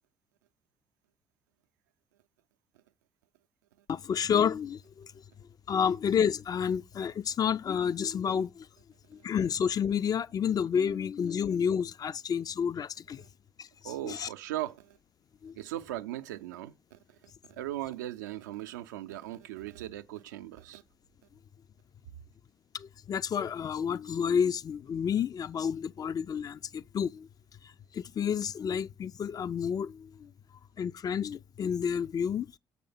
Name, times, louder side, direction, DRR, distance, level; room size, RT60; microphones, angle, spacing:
voice 1, 3.9-5.1 5.7-8.7 9.1-13.2 13.6-13.7 14.0-14.3 15.4-15.6 22.7-27.3 27.6-30.3 30.8-32.6, left 7 dB, 40° left, 0.4 m, -30 dB
voice 2, 13.8-15.0 15.5-20.8, right 14 dB, 75° right, 0.5 m, -39 dB
6.8 x 4.3 x 5.4 m
figure-of-eight pair, 45°, 10 cm